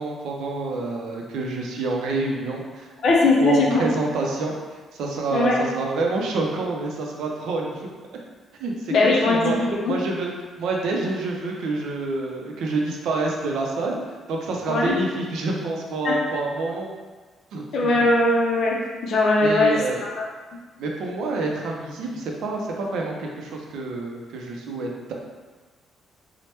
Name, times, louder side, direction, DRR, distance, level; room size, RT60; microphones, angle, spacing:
voice 1, 0.0-2.9 3.4-4.5 4.9-7.9 8.6-9.5 9.9-10.3 10.6-14.0 14.3-16.9 17.5-17.9 19.4-20.0 20.8-25.1, right 3 dB, 70° right, 0 dB, 0.4 m, -27 dB
voice 2, 3.0-3.8 5.3-5.6 8.9-10.0 14.7-15.0 16.0-16.2 17.7-18.8 19.0-19.7 20.2-20.3, left 2 dB, 50° left, -2 dB, 0.5 m, -20 dB
2.9 x 2.0 x 3.2 m, 1.4 s
cardioid pair, 170°, 0 cm